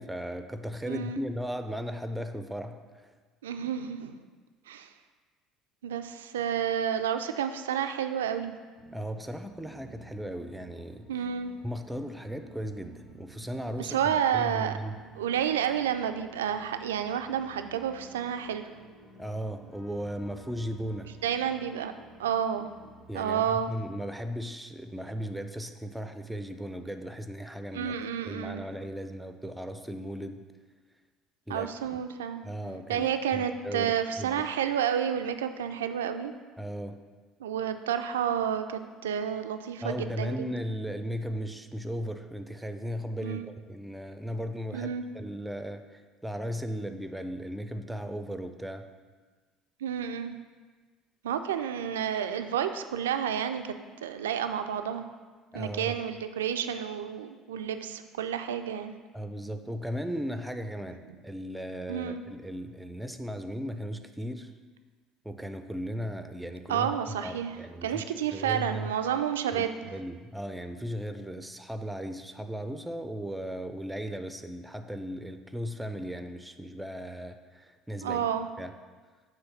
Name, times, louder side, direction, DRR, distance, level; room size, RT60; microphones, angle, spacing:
voice 1, 0.0-3.1 8.9-11.1 11.6-14.0 14.3-15.0 19.2-21.1 23.1-27.9 28.3-30.4 31.5-32.0 32.4-34.4 36.6-37.0 39.8-48.9 55.5-56.0 59.1-64.5 65.2-66.9 67.2-68.0 68.3-68.9 69.5-69.6 69.9-78.2 78.6-78.7, equal, 5° right, 8 dB, 0.5 m, -36 dB
voice 2, 0.9-1.2 3.4-4.2 4.7-4.9 5.8-8.6 11.1-11.5 13.8-14.8 15.2-18.7 21.2-21.9 22.2-22.7 23.1-23.7 27.7-28.7 31.5-32.4 32.9-36.3 37.4-40.4 43.2-43.4 44.7-45.0 49.8-50.4 51.2-53.7 54.0-55.1 55.5-59.0 61.9-62.2 66.7-67.6 67.8-69.9 78.0-78.5, right 9 dB, 70° right, 8 dB, 0.3 m, -30 dB
sound 1, 8.8-23.1, right 2 dB, 45° left, 2.1 m, -53 dB
7.0 x 3.2 x 5.6 m, 1.4 s
figure-of-eight pair, 60°, 0 cm